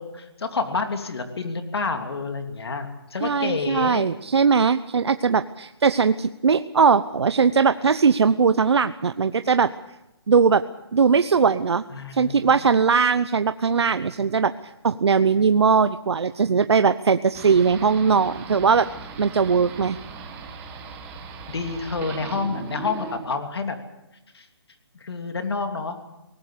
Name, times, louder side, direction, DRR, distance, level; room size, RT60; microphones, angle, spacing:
voice 1, 0.0-4.1 11.9-12.6 21.5-23.8 24.3-24.5 25.0-26.0, left 4 dB, 70° left, 6 dB, 3.0 m, -29 dB
voice 2, 3.2-9.7 10.3-10.6 10.9-11.8 12.1-14.5 14.8-18.9 19.2-20.0, right 5 dB, 80° right, 12 dB, 0.8 m, -20 dB
sound 1, 17.3-23.2, right 6 dB, 10° right, 1.6 m, -38 dB
22.5 x 19.0 x 8.4 m, 0.92 s
hypercardioid pair, 170°, 14 cm